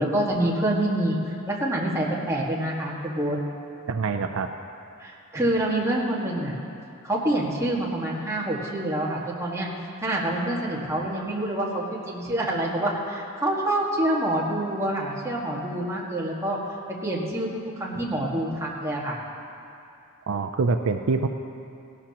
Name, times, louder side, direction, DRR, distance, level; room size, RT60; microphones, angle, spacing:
voice 1, 0.0-3.4 5.0-6.5 7.0-9.7 10.0-16.6 17.0-17.5 17.8-19.2, right 1 dB, 15° right, -4 dB, 1.6 m, -26 dB
voice 2, 3.9-4.5 20.3-21.3, right 4 dB, 65° right, 7 dB, 0.4 m, -25 dB
17.5 x 12.0 x 2.9 m, 2.5 s
head